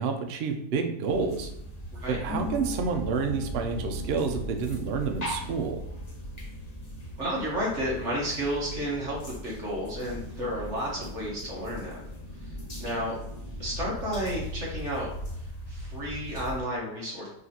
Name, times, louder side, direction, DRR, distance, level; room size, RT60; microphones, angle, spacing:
voice 1, 0.0-1.5 2.1-5.8, right 5 dB, 75° right, 5 dB, 0.5 m, -29 dB
sound 1, 1.1-16.6, equal, 35° left, 0.7 m, -38 dB
Harp, 2.3-9.8 10.0-11.1 11.4-12.0, left 5 dB, 90° left, 1.3 m, -45 dB
voice 2, 7.2-9.2 9.4-12.0 12.8-13.2 13.6-15.1 15.7-17.3, equal, 50° right, -5 dB, 1.4 m, -31 dB
4.9 x 3.3 x 2.8 m, 0.79 s
omnidirectional pair, 1.8 m